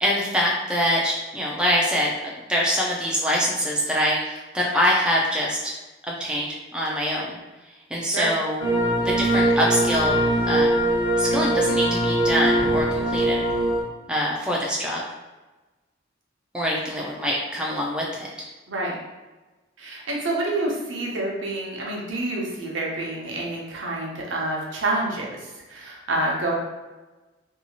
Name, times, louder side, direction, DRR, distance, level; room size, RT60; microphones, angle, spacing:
voice 1, 0.0-2.1 2.5-5.7 6.1-7.4 7.9-8.6 9.0-10.8 11.2-13.4 14.1-15.0 16.5-18.3, equal, 5° right, -3 dB, 0.3 m, -24 dB
sound 1, 8.6-13.8, right 1 dB, 25° left, 0.7 m, -21 dB
voice 2, 19.8-26.5, right 2 dB, 80° right, -2 dB, 0.7 m, -28 dB
2.7 x 2.3 x 2.8 m, 1.2 s
head